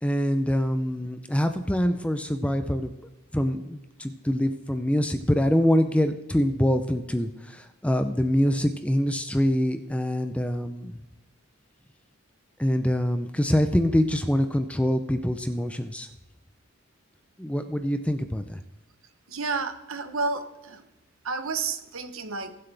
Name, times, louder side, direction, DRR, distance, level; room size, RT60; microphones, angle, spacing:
voice 1, 0.0-2.9 3.3-11.0 12.6-16.1 17.4-18.6, equal, 5° left, 8 dB, 0.5 m, -25 dB
voice 2, 19.3-20.8 21.2-22.5, right 4 dB, 70° right, 9 dB, 1.0 m, -31 dB
21.0 x 7.7 x 3.4 m, 0.96 s
head